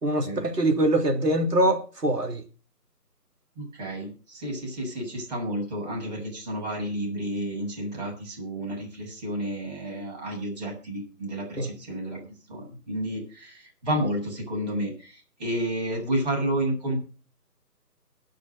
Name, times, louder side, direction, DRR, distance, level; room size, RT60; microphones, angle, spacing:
voice 1, 0.0-2.4 11.5-11.7, right 1 dB, 70° right, 3.1 m, -23 dB
voice 2, 3.6-12.2 12.5-17.0, right 1 dB, 25° right, 7.5 m, -31 dB
18.0 x 6.3 x 6.7 m
figure-of-eight pair, 160°, 49 cm